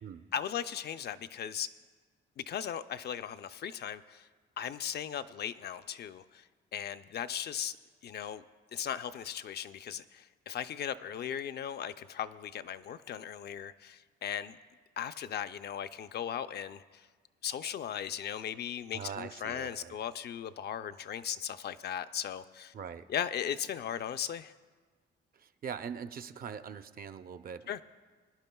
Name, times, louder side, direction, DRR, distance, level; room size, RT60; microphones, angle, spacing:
voice 1, 0.3-1.7 2.4-4.3 4.6-6.4 6.7-7.8 8.0-8.4 8.7-14.6 15.0-17.1 17.4-22.7 23.1-24.5 27.7-27.8, left 9 dB, 55° left, 10 dB, 0.4 m, -37 dB
voice 2, 18.9-20.0 22.7-23.1 25.3-27.8, right 7 dB, 50° right, 10 dB, 0.6 m, -42 dB
23.5 x 10.5 x 2.3 m, 1.5 s
cardioid pair, 90°, 20 cm